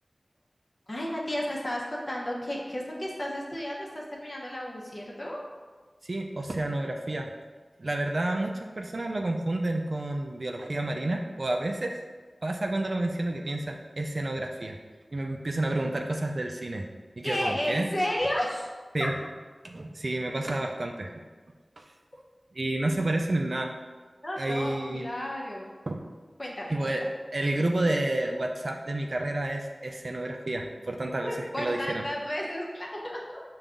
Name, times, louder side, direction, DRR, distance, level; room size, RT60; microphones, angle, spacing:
voice 1, 0.9-5.4 17.2-18.7 19.0-19.1 24.2-25.7 26.4-26.9 31.2-33.4, left 1 dB, 40° left, -3 dB, 0.8 m, -33 dB
voice 2, 6.1-7.3 7.8-12.0 12.4-14.8 15.1-16.9 17.2-17.9 18.9-19.1 19.6-21.1 21.8-21.9 22.5-23.7 24.4-25.1 25.9-26.1 26.7-27.0 27.3-32.0, right 1 dB, 60° right, 2 dB, 0.3 m, -30 dB
5.2 x 2.3 x 3.7 m, 1.4 s
wide cardioid pair, 55°, 0 cm